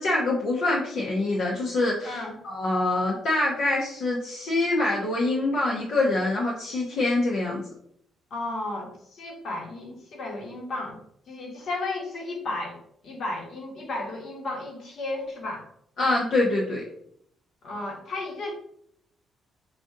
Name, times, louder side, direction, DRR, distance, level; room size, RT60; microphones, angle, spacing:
voice 1, 0.0-2.2 2.4-7.6 16.0-16.8, left 2 dB, 80° left, -5 dB, 0.9 m, -25 dB
voice 2, 8.3-11.0 11.3-12.8 13.0-15.6 17.6-18.5, left 2 dB, 60° left, 0 dB, 1.4 m, -33 dB
5.0 x 2.6 x 3.7 m, 0.69 s
cardioid pair, 90°, 0 cm